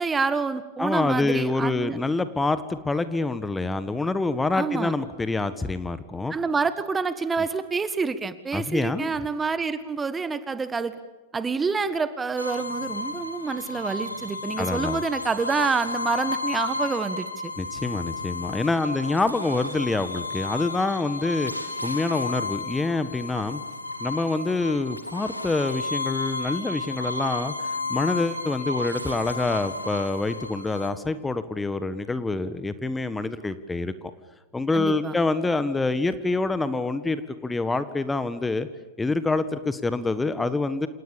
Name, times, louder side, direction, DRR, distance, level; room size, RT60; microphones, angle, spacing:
voice 1, 0.0-2.0 4.5-4.9 6.3-10.9 11.3-17.5 34.7-35.1, right 4 dB, 15° right, 13 dB, 1.5 m, -27 dB
voice 2, 0.8-6.3 8.5-9.1 14.6-15.0 17.6-23.6 24.0-34.1 34.5-38.7 39.0-40.9, left 3 dB, 10° left, 13 dB, 1.5 m, -26 dB
sound 1, 12.4-30.9, left 2 dB, 85° left, 2.8 m, -32 dB
29.0 x 28.0 x 7.1 m, 1.2 s
figure-of-eight pair, 90°, 0 cm